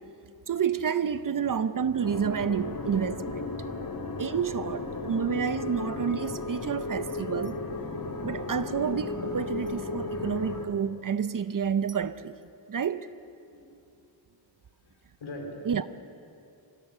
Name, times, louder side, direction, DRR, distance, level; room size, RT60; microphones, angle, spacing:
voice 1, 0.5-3.5 4.2-7.6 8.2-12.4 12.7-13.1 15.6-15.8, right 7 dB, 45° right, 0.6 m, -29 dB
sound 1, 2.0-10.7, left 3 dB, 45° left, 1.9 m, -35 dB
voice 2, 2.6-2.9 4.6-5.1 13.5-13.7 14.8-15.9, left 1 dB, 75° left, 4.3 m, -44 dB
25.0 x 18.0 x 6.8 m
wide cardioid pair, 115°, 47 cm